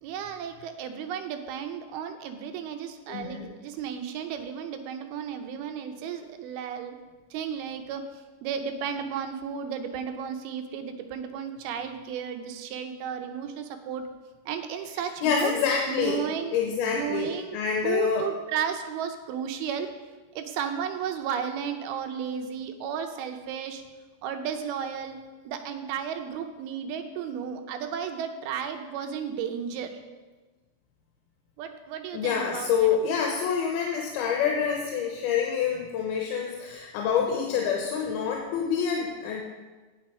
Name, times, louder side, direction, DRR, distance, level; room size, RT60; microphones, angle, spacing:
voice 1, 0.0-7.0 7.3-14.1 14.5-15.5 15.9-16.6 16.9-17.6 17.8-19.9 20.3-23.8 24.2-25.2 25.5-30.0 31.6-33.0, right 8 dB, 80° right, 7 dB, 2.6 m, -33 dB
voice 2, 3.1-3.5 15.2-16.2 16.5-18.3 32.1-39.4, left 7 dB, 80° left, 0 dB, 2.8 m, -27 dB
8.8 x 7.8 x 4.9 m, 1.3 s
omnidirectional pair, 4.5 m